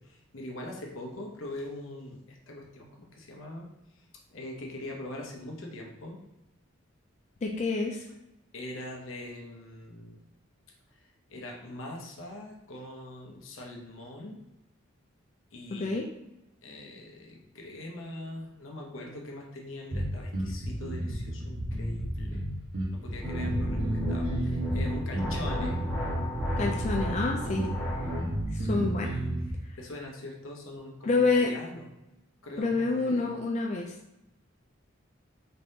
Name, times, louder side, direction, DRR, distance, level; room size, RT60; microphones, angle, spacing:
voice 1, 0.0-6.2 8.5-10.2 10.9-14.4 15.5-16.0 16.6-22.4 22.9-25.8 29.8-31.9 32.4-33.3, left 1 dB, 80° left, 0 dB, 0.8 m, -42 dB
voice 2, 7.4-8.0 15.8-16.1 26.6-27.7 28.5-29.2 31.0-31.6 32.6-33.9, left 3 dB, 35° left, 1 dB, 0.3 m, -28 dB
sound 1, 19.9-29.5, right 1 dB, 90° right, 1.0 m, -32 dB
sound 2, 23.1-28.4, equal, ahead, 1.1 m, -33 dB
4.2 x 3.5 x 2.7 m, 0.93 s
head